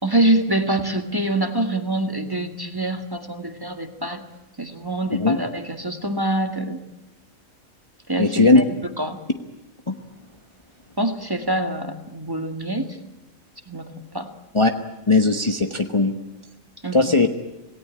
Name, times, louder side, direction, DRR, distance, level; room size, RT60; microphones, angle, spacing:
voice 1, 0.0-4.2 4.6-6.8 8.1-9.2 11.0-13.0 13.7-14.3 16.8-17.1, right 1 dB, 15° right, 6 dB, 1.7 m, -25 dB
voice 2, 8.2-8.6 9.9-10.0 14.5-14.7 15.1-16.1 16.9-17.3, left 3 dB, 20° left, 5 dB, 1.3 m, -17 dB
27.0 x 18.5 x 8.7 m, 0.97 s
omnidirectional pair, 1.4 m